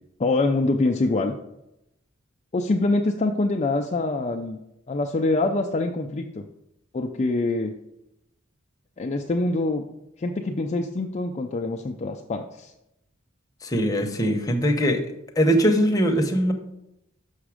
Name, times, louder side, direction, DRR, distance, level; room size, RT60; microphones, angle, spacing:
voice 1, 0.2-1.4 2.5-4.6 4.9-6.4 6.9-7.7 9.0-9.8 10.2-12.7, left 2 dB, 35° left, 3 dB, 0.4 m, -25 dB
voice 2, 13.6-15.0 15.4-16.5, equal, 20° left, 3 dB, 0.8 m, -21 dB
6.4 x 6.0 x 4.9 m, 0.84 s
head